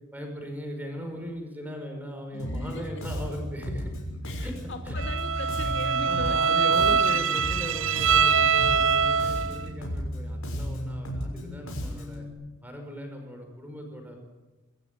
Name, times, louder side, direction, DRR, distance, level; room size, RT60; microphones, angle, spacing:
voice 1, 0.1-4.0 4.4-4.5 4.9-5.0 6.0-12.2 12.6-14.3, equal, 10° right, 3 dB, 5.3 m, -38 dB
voice 2, 2.3-3.0 4.2-7.2, left 1 dB, 60° left, 4 dB, 2.5 m, -40 dB
Bass guitar, 2.4-12.3, equal, 85° left, 6.3 m, -34 dB
Bowed string instrument, 5.0-9.7, right 6 dB, 70° right, 0.7 m, -23 dB
26.5 x 14.0 x 9.2 m, 1.2 s
head